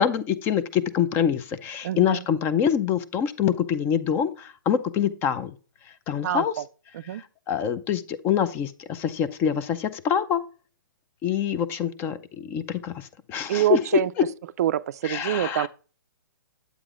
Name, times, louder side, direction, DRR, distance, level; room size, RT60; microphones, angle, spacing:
voice 1, 0.0-5.5 6.1-6.5 7.1-10.4 11.2-14.3 15.0-15.7, left 8 dB, 20° left, 0.4 m, -25 dB
voice 2, 1.8-2.2 6.2-6.6 6.9-7.2 13.5-14.1 14.6-15.7, right 12 dB, 50° right, 0.3 m, -26 dB
9.6 x 8.1 x 2.4 m
hypercardioid pair, 150°, 11 cm